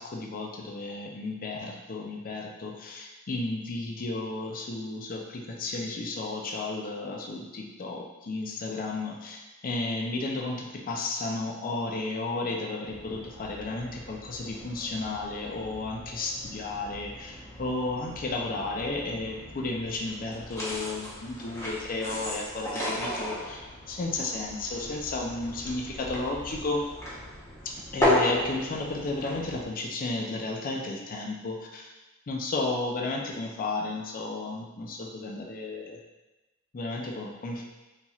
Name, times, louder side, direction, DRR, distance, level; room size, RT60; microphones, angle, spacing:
voice 1, 0.0-26.9 27.6-31.9 32.3-36.0 36.7-37.6, left 2 dB, 40° left, 0 dB, 0.4 m, -33 dB
sound 1, 12.8-29.6, left 1 dB, 15° left, 0.7 m, -35 dB
4.0 x 3.0 x 2.3 m, 1.1 s
head